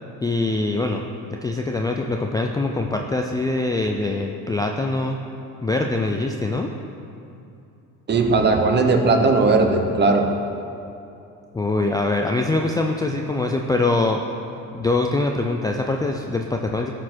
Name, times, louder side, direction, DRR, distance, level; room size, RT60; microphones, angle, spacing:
voice 1, 0.2-1.0 1.4-5.2 5.6-6.7 11.5-14.2 14.7-16.9, left 2 dB, 10° left, 2 dB, 0.3 m, -23 dB
voice 2, 8.1-10.3, right 3 dB, 30° right, 5 dB, 0.9 m, -18 dB
12.5 x 4.4 x 4.3 m, 2.7 s
cardioid pair, 110°, 34 cm